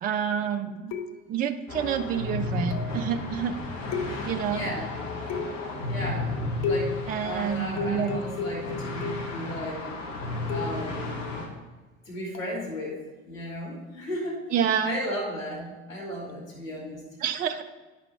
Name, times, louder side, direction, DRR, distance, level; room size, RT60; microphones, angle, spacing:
voice 1, 0.0-0.9 1.3-3.6 4.2-4.6 7.1-8.2 14.5-15.0 17.2-17.6, right 8 dB, 25° right, 9 dB, 0.4 m, -28 dB
sound 1, 0.9-1.5 2.7-3.1 3.9-4.5 5.3-5.8 6.6-7.1 7.8-9.4 10.5-10.9 12.3-12.6, left 4 dB, 40° left, 1.0 m, -33 dB
sound 2, 1.7-11.5, left 2 dB, 70° left, 1.3 m, -33 dB
voice 2, 4.4-4.9 5.8-9.9 10.5-11.2 12.0-13.0 13.3-14.4 14.8-17.0, equal, 85° left, -6 dB, 2.5 m, -35 dB
9.9 x 5.8 x 3.4 m, 1.3 s
figure-of-eight pair, 60°, 39 cm